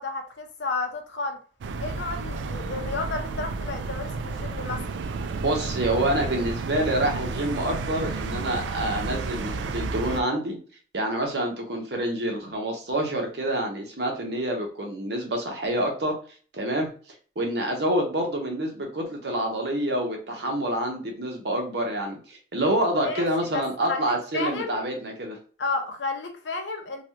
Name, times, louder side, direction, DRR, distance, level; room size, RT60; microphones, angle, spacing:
voice 1, 0.0-1.4 1.8-4.8 23.0-24.8 25.6-27.0, left 3 dB, 85° left, 0.7 m, -32 dB
sound 1, 1.6-10.2, right 3 dB, 90° right, 0.3 m, -31 dB
voice 2, 5.4-10.6 10.9-16.2 16.5-16.9 17.4-25.4, right 1 dB, 70° right, 0.9 m, -27 dB
3.1 x 2.3 x 2.8 m
head